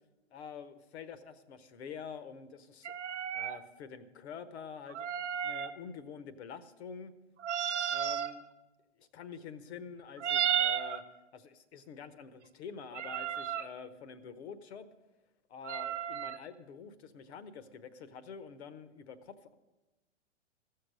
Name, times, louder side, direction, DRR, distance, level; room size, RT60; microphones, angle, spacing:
voice 1, 0.3-3.0 3.3-7.1 7.9-8.4 9.0-11.0 11.3-14.9 15.5-19.5, left 6 dB, 60° left, 13 dB, 1.1 m, -47 dB
sound 1, 2.8-3.6 4.9-5.7 7.4-8.3 10.2-11.0 12.9-13.7 15.6-16.4, right 9 dB, 70° right, 0.8 m, -33 dB
15.0 x 6.7 x 6.5 m, 1.1 s
hypercardioid pair, 120°, 37 cm